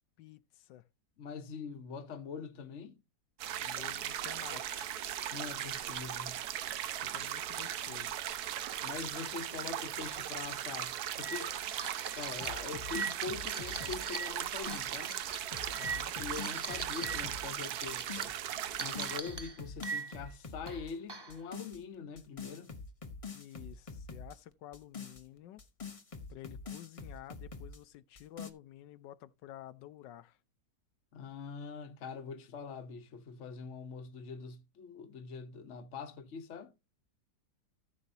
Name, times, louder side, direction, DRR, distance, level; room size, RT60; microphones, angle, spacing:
voice 1, 0.2-0.9 3.6-4.9 7.0-8.2 15.7-16.2 23.3-25.6 26.3-30.4, left 13 dB, 90° left, 1.3 m, -51 dB
voice 2, 1.2-2.9 5.3-6.4 8.8-11.6 12.2-15.2 16.2-18.3 18.8-22.7 31.1-36.7, left 5 dB, 50° left, 1.2 m, -43 dB
sound 1, 3.4-19.2, right 11 dB, 70° right, 1.2 m, -38 dB
sound 2, 9.9-10.2 10.5-10.6 11.1-17.2 17.5-18.2 18.8-20.3 20.7-21.4, right 4 dB, 25° right, 0.6 m, -42 dB
sound 3, 12.4-14.9 15.3-17.5 17.9-18.4 18.7-20.9 21.3-21.8 22.2-24.4 24.7-27.8 28.2-28.5, left 4 dB, 30° left, 0.7 m, -45 dB
14.5 x 6.2 x 2.7 m
omnidirectional pair, 1.9 m